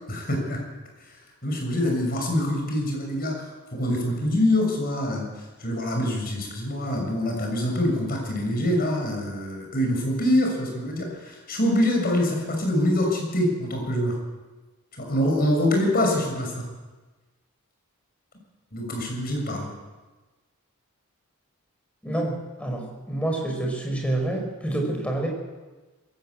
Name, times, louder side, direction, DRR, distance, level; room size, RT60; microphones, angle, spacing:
voice 1, 0.1-0.6 1.4-5.3 5.6-14.2 14.9-16.7 18.7-19.7, left 1 dB, 40° left, 1 dB, 6.5 m, -25 dB
voice 2, 22.0-25.3, right 1 dB, 5° left, 1 dB, 5.1 m, -28 dB
21.5 x 16.0 x 8.6 m, 1.2 s
head